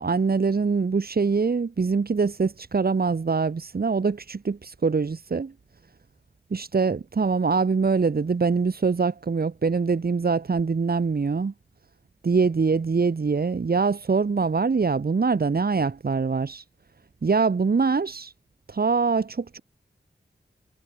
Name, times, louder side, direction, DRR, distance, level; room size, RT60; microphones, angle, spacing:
voice 1, 0.0-5.5 6.5-11.5 12.2-16.6 17.2-18.3 18.7-19.6, right 4 dB, 60° right, 4.2 m, -23 dB
cardioid pair, 60°, 18 cm